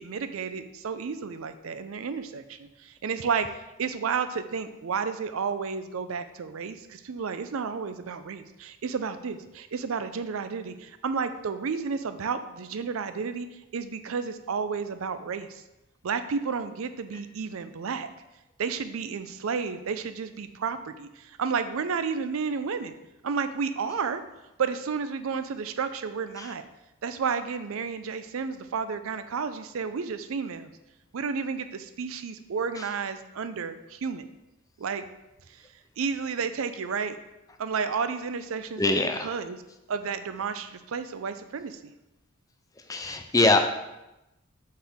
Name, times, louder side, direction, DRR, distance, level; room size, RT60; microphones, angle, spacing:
voice 1, 0.0-15.6 16.0-18.1 18.6-23.0 23.2-24.2 24.6-26.6 27.0-30.7 31.1-34.3 34.8-35.0 35.5-35.6 36.0-37.2 37.6-38.9 39.2-39.6 39.9-41.9, right 5 dB, 75° right, 10 dB, 0.4 m, -31 dB
voice 2, 38.8-39.3 42.9-43.6, left 2 dB, 15° left, 6 dB, 0.4 m, -22 dB
7.5 x 4.4 x 3.5 m, 0.95 s
head